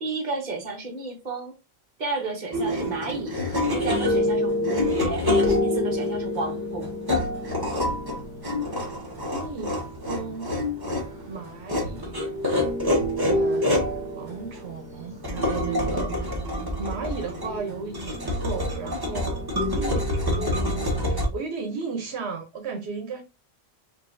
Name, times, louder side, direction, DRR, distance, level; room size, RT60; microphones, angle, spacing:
voice 1, 0.0-1.5 2.0-3.3 3.7-5.2 5.6-6.9, right 2 dB, 45° right, 1.3 m, -32 dB
sound 1, 2.5-21.3, left 1 dB, 20° right, 1.1 m, -26 dB
voice 2, 9.2-9.8 10.1-10.5 11.3-12.3 13.2-13.8 14.1-16.4 16.8-23.2, right 5 dB, 80° right, 1.1 m, -35 dB
5.2 x 2.6 x 2.6 m
omnidirectional pair, 1.1 m